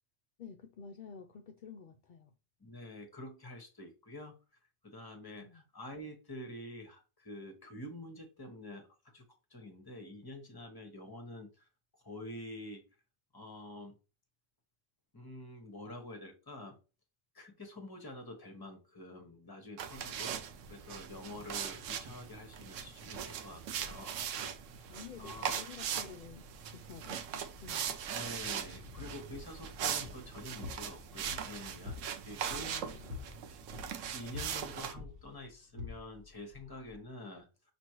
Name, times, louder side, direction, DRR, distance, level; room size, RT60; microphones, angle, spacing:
voice 1, 0.4-2.3 5.4-5.6 21.3-21.5 24.8-27.9 32.5-33.1, left 6 dB, 60° left, 0.5 m, -51 dB
voice 2, 2.6-4.3 4.8-9.2 9.5-11.7 12.0-12.8 13.3-13.9 15.1-16.8 17.3-20.4 20.7-24.2 25.2-25.6 28.0-33.0 34.1-37.5, left 1 dB, 20° left, 0.9 m, -47 dB
sound 1, 19.8-34.9, right 8 dB, 85° right, 1.0 m, -40 dB
sound 2, 28.3-37.0, left 4 dB, 65° right, 1.5 m, -48 dB
6.0 x 3.0 x 2.9 m
omnidirectional pair, 1.3 m